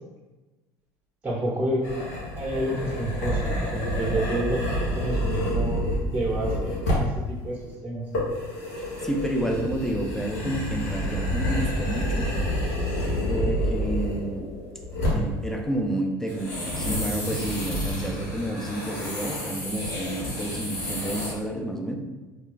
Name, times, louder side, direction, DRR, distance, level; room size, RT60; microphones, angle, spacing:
voice 1, 1.2-8.1, right 1 dB, 15° right, -4 dB, 0.8 m, -29 dB
sound 1, 1.8-7.2 8.1-14.5 14.8-15.4 16.3-21.3, equal, 90° left, 1.3 m, -29 dB
voice 2, 8.8-12.3 13.3-14.5 15.1-22.0, right 1 dB, 5° left, 1 dB, 0.6 m, -30 dB
sound 2, 11.3-15.4, left 3 dB, 65° left, 0.6 m, -38 dB
3.2 x 2.3 x 3.8 m, 1.2 s
supercardioid pair, 95°, 9 cm